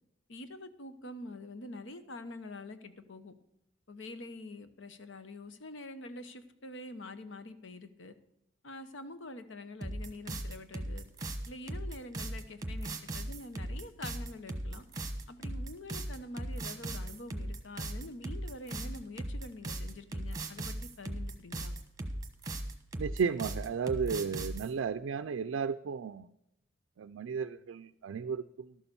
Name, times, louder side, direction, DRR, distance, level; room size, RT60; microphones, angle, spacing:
voice 1, 0.3-3.3 3.9-8.1 8.6-11.0 11.4-14.8 15.3-21.7, left 2 dB, 70° left, 10 dB, 0.9 m, -46 dB
sound 1, 9.8-24.7, right 1 dB, 20° right, 1.1 m, -38 dB
voice 2, 23.0-26.3 27.0-28.7, right 6 dB, 80° right, 10 dB, 0.4 m, -34 dB
12.5 x 7.0 x 6.8 m, 0.82 s
head